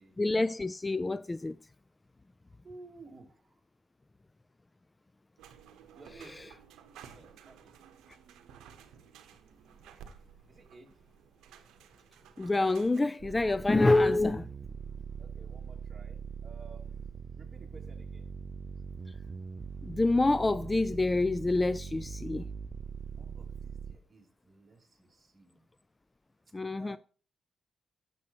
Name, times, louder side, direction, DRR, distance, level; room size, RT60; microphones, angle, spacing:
voice 1, 0.2-1.6 6.4-6.5 12.4-14.5 19.8-22.5 26.5-27.0, left 2 dB, 25° left, 0.3 m, -27 dB
voice 2, 2.6-3.6 5.9-6.5 7.1-7.8 10.5-10.9 15.2-18.3 23.0-25.6 26.7-27.0, right 3 dB, 30° right, 2.8 m, -55 dB
sound 1, 5.4-13.0, right 8 dB, 90° right, 0.9 m, -54 dB
sound 2, 13.2-24.0, right 5 dB, 45° right, 0.5 m, -42 dB
11.5 x 7.7 x 2.9 m
cardioid pair, 70°, 0 cm